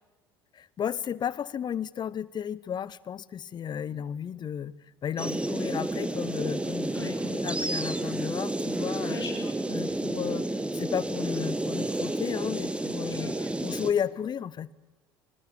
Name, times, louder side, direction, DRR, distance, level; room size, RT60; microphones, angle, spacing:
voice 1, 0.5-4.7 5.0-9.2 9.7-10.5 10.7-13.3 13.6-14.7, left 8 dB, 35° left, 0.8 m, -33 dB
sound 1, 5.2-13.9, right 1 dB, 10° right, 1.7 m, -31 dB
voice 2, 9.1-9.5 9.9-10.1 13.1-13.5, left 3 dB, 85° left, 2.0 m, -42 dB
21.0 x 19.5 x 8.6 m
figure-of-eight pair, 65°, 13 cm